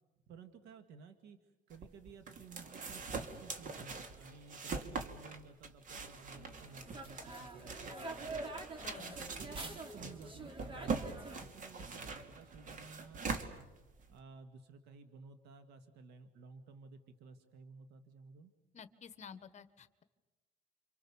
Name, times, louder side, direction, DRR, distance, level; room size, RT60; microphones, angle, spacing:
voice 1, 0.3-1.4 1.7-8.5 9.0-13.7 14.1-18.5, right 5 dB, 85° right, 9 dB, 1.9 m, -55 dB
sound 1, 1.7-14.2, right 4 dB, 50° right, 2.8 m, -43 dB
sound 2, 6.3-11.4, right 2 dB, 30° right, 3.5 m, -46 dB
voice 2, 8.8-9.2 18.7-20.0, left 7 dB, 45° left, 12 dB, 1.5 m, -51 dB
29.5 x 26.0 x 7.1 m, 1.1 s
cardioid pair, 110°, 17 cm